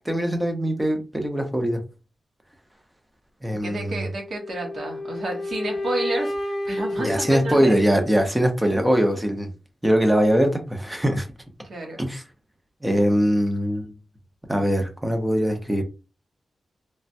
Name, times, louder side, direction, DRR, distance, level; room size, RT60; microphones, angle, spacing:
voice 1, 0.1-1.8 3.4-4.1 7.0-9.5 9.8-11.3 12.0-12.2 12.8-13.9 14.5-15.8, equal, 10° right, 4 dB, 0.6 m, -22 dB
voice 2, 3.6-7.8 11.6-12.0, right 2 dB, 50° right, 1 dB, 1.0 m, -31 dB
sound 1, 4.3-8.3, left 1 dB, 45° left, 0.7 m, -31 dB
3.2 x 2.1 x 2.6 m, 0.31 s
wide cardioid pair, 155°, 0 cm